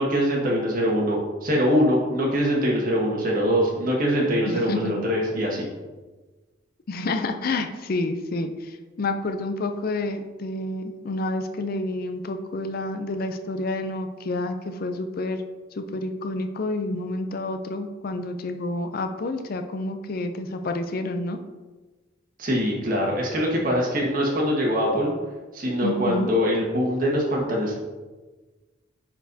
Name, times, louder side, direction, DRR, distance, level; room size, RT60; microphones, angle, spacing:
voice 1, 0.0-5.6 22.4-25.1 25.5-27.8, equal, 45° right, -2 dB, 1.6 m, -23 dB
voice 2, 4.5-4.9 6.9-15.4 15.8-21.4 25.8-26.3, left 2 dB, 50° left, 7 dB, 0.4 m, -29 dB
10.0 x 4.3 x 2.7 m, 1.3 s
head